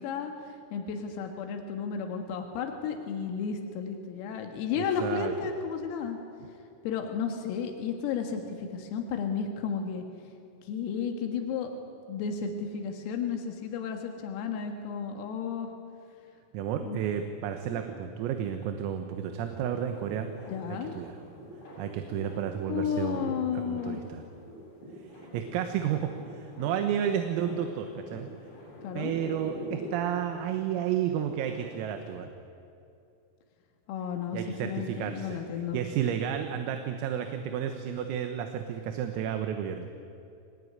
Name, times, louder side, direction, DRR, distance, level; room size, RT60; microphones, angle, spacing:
voice 1, 0.0-6.2 6.8-10.0 10.6-11.7 12.1-15.7 16.8-17.0 17.7-17.8 20.5-20.9 22.7-24.0 28.8-29.1 33.9-35.8, left 6 dB, 85° left, 4 dB, 4.3 m, -33 dB
voice 2, 4.8-5.3 16.5-20.3 21.0-21.2 21.8-24.2 25.3-28.3 29.0-32.3 34.3-35.4 35.7-39.9, right 9 dB, 85° right, 6 dB, 4.0 m, -32 dB
sound 1, 19.5-32.2, equal, 50° left, 9.2 m, -45 dB
25.0 x 20.0 x 9.6 m, 2.6 s
omnidirectional pair, 6.0 m